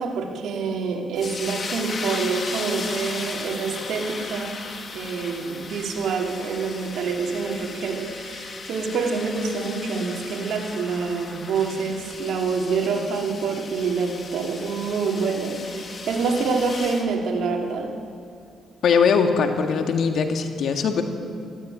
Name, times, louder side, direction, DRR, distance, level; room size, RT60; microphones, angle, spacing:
voice 1, 0.0-4.5 4.9-17.9, right 4 dB, 75° right, 1 dB, 3.1 m, -26 dB
sound 1, 1.2-17.1, left 4 dB, 45° left, 2.7 m, -36 dB
voice 2, 18.8-21.0, left 5 dB, 70° left, 5 dB, 1.9 m, -21 dB
18.0 x 16.0 x 9.4 m, 2.4 s
cardioid pair, 90°, 0 cm